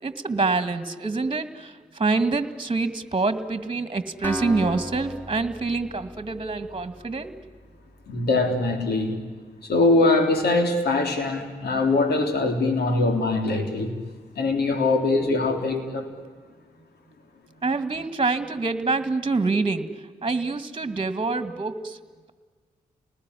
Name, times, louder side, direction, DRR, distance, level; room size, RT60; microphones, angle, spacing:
voice 1, 0.0-7.3 17.6-19.9 20.2-22.0, right 3 dB, 30° right, 11 dB, 2.1 m, -26 dB
Acoustic guitar, 4.2-8.1, equal, 10° left, 4.2 m, -36 dB
voice 2, 8.1-9.2 9.6-14.0 14.4-16.1, left 2 dB, 70° left, 5 dB, 3.8 m, -22 dB
29.5 x 19.5 x 10.0 m, 1.5 s
hypercardioid pair, 40°, 17 cm